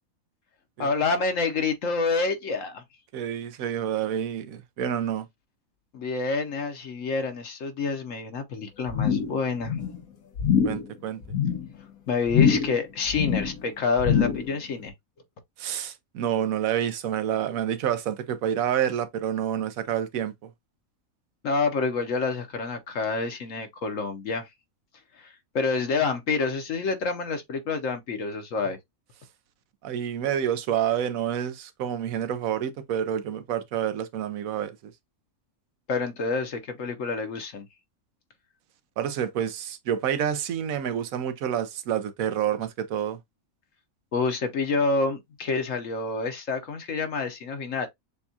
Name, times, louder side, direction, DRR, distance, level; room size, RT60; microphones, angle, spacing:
voice 1, 0.8-2.8 5.9-9.8 12.1-14.9 21.4-24.5 25.2-28.8 35.9-37.7 44.1-47.9, left 4 dB, 65° left, 1.2 m, -28 dB
voice 2, 3.1-5.3 10.6-11.2 15.6-20.5 29.8-34.9 39.0-43.2, right 9 dB, 75° right, 1.1 m, -28 dB
sound 1, 8.9-9.4 9.6-10.0 10.4-10.9 11.2-11.7 12.3-12.8 13.1-13.6 14.0-14.5 14.9-15.0, left 7 dB, 85° left, 1.3 m, -24 dB
7.0 x 2.3 x 2.7 m
omnidirectional pair, 1.5 m